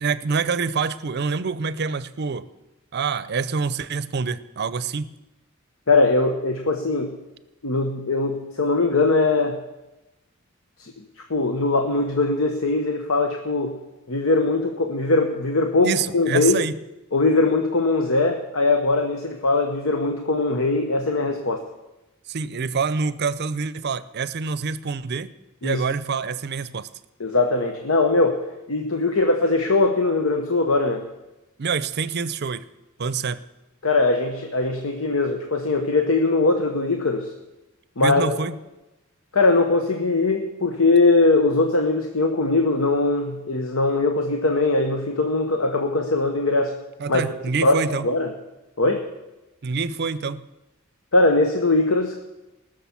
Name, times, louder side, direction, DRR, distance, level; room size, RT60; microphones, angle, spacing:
voice 1, 0.0-2.5 2.9-5.1 15.8-16.7 22.3-25.3 25.6-26.9 31.6-32.7 33.0-33.4 38.0-38.6 47.0-48.1 49.6-50.4, right 5 dB, 50° right, 16 dB, 0.5 m, -26 dB
voice 2, 5.9-7.1 7.6-9.6 10.8-10.9 11.3-13.8 14.1-16.6 17.1-21.6 25.6-25.8 27.2-31.0 33.8-37.3 38.0-38.4 39.3-46.8 47.1-47.2 47.6-48.3 48.8-49.1 51.1-52.2, left 3 dB, 80° left, 5 dB, 1.0 m, -21 dB
19.0 x 6.6 x 7.1 m, 1.0 s
head